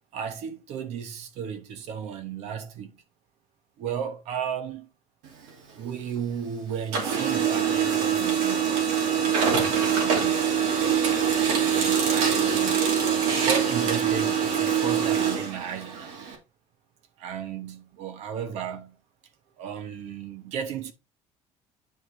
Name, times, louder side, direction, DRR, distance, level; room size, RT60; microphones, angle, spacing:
voice 1, 0.1-2.9 3.8-4.9 5.7-8.9 9.8-10.5 11.6-12.8 13.4-16.1 17.2-19.0 19.6-20.9, right 8 dB, 60° right, 1.2 m, -34 dB
Printer, 5.2-6.5 6.8-16.4, right 7 dB, 85° right, 2.5 m, -24 dB
9.5 x 4.5 x 3.4 m
cardioid pair, 150°, 13 cm